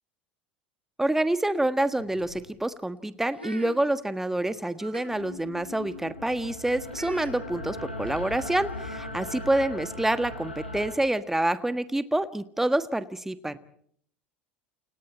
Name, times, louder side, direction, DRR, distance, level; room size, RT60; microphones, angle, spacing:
voice 1, 1.0-13.6, right 1 dB, 5° right, 13 dB, 1.4 m, -27 dB
sound 1, 1.9-2.5 3.3-3.8 4.3-4.4 4.7-5.0 5.7-6.0 6.9-7.3 8.3-8.4 8.7-8.9, right 1 dB, 90° right, 3.3 m, -43 dB
sound 2, 5.1-11.0, left 2 dB, 85° left, 4.5 m, -38 dB
29.5 x 28.0 x 4.3 m, 0.63 s
figure-of-eight pair, 70°, 6 cm